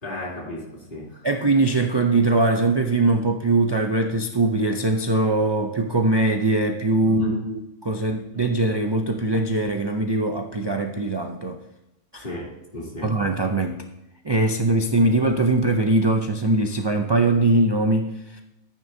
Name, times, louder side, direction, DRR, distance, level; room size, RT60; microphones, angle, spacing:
voice 1, 0.0-1.2 7.0-7.4 12.2-13.1, left 1 dB, 40° left, -5 dB, 3.3 m, -34 dB
voice 2, 1.2-11.6 12.1-12.2 13.0-13.8 14.2-18.4, right 2 dB, 45° right, 4 dB, 0.3 m, -21 dB
14.5 x 9.1 x 2.7 m, 0.94 s
omnidirectional pair, 1.4 m